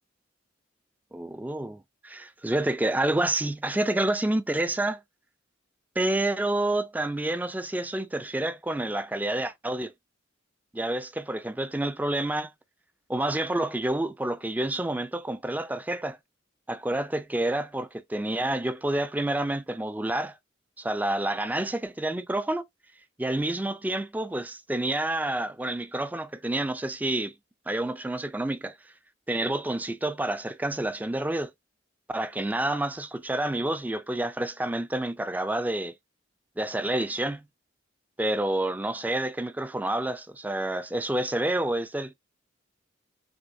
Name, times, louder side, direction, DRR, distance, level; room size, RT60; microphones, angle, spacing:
voice 1, 1.1-5.0 6.0-9.9 10.7-12.5 13.1-16.2 16.7-20.3 20.8-22.6 23.2-27.3 27.7-28.8 29.3-31.5 32.1-35.9 36.6-37.5 38.2-42.1, right 1 dB, 10° right, 0.4 m, -28 dB
6.3 x 2.6 x 2.6 m
head